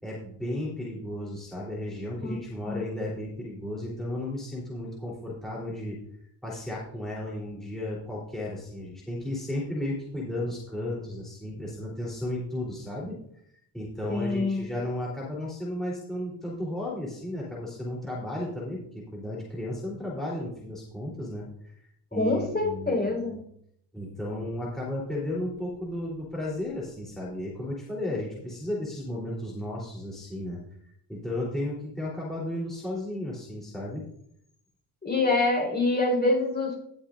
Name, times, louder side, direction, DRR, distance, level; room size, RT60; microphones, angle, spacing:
voice 1, 0.0-6.0 6.4-13.2 13.7-23.3 23.9-30.6 31.1-34.0, left 1 dB, ahead, -7 dB, 3.5 m, -34 dB
voice 2, 14.1-14.7 22.1-23.4 35.0-36.8, left 2 dB, 20° left, 0 dB, 4.5 m, -25 dB
19.5 x 7.2 x 2.6 m, 0.70 s
cardioid pair, 115°, 46 cm